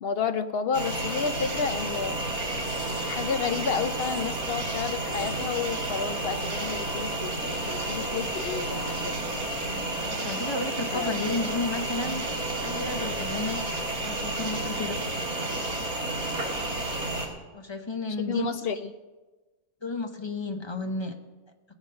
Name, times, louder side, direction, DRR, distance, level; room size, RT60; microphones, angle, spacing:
voice 1, 0.0-2.2 3.0-9.2 10.9-11.1 18.2-18.9, left 6 dB, 60° left, 10 dB, 0.6 m, -31 dB
sound 1, 0.7-17.3, right 2 dB, 85° right, 2.7 m, -31 dB
voice 2, 10.1-12.3 12.6-13.6 14.0-15.0 17.5-18.5 19.8-21.1, left 3 dB, 25° left, 5 dB, 0.8 m, -32 dB
18.0 x 7.3 x 5.3 m, 1.2 s
omnidirectional pair, 1.5 m